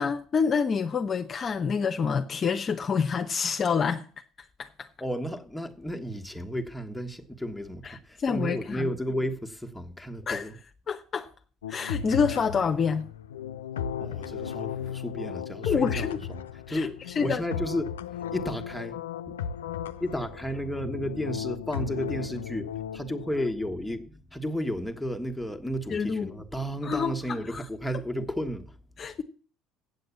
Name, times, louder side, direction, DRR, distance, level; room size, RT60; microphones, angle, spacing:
voice 1, 0.0-4.0 4.6-4.7 8.2-8.9 10.3-10.4 10.9-11.3 11.7-13.1 15.7-16.2 16.7-16.9 17.2-17.4 25.9-26.3 26.8-27.1 29.0-29.2, left 6 dB, 40° left, 0.8 m, -27 dB
voice 2, 5.0-10.6 14.0-17.9 18.3-19.0 19.3-19.4 20.0-28.8, equal, 5° left, 1.5 m, -33 dB
sound 1, 11.6-23.5, left 8 dB, 90° left, 0.5 m, -35 dB
8.1 x 7.8 x 8.4 m
hypercardioid pair, 65°, 0 cm